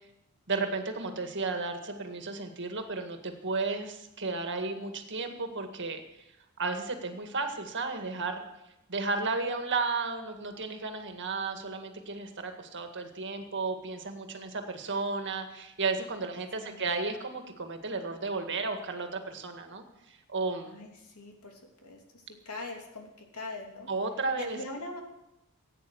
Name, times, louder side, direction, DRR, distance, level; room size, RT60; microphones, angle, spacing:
voice 1, 0.5-6.0 6.6-8.4 8.9-19.8 20.3-20.7 23.9-24.6, right 3 dB, 55° right, 6 dB, 1.9 m, -33 dB
voice 2, 20.6-23.9 24.4-25.0, left 2 dB, 80° left, 2 dB, 3.1 m, -42 dB
16.0 x 9.2 x 8.0 m, 0.92 s
head